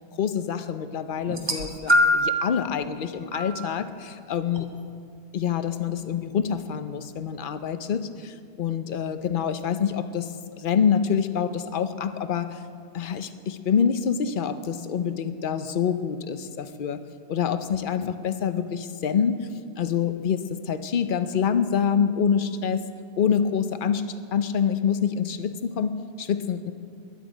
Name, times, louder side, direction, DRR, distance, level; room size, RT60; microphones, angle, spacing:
voice 1, 0.2-4.7 5.3-10.3 10.6-12.6 12.9-17.0 17.3-19.5 19.8-22.8 23.2-24.0 24.3-26.7, left 7 dB, 55° left, 11 dB, 0.9 m, -26 dB
sound 1, 1.3-2.4 3.3-3.5 4.6-4.7, left 1 dB, 25° right, 1.5 m, -22 dB
21.0 x 10.0 x 5.1 m, 2.3 s
omnidirectional pair, 1.1 m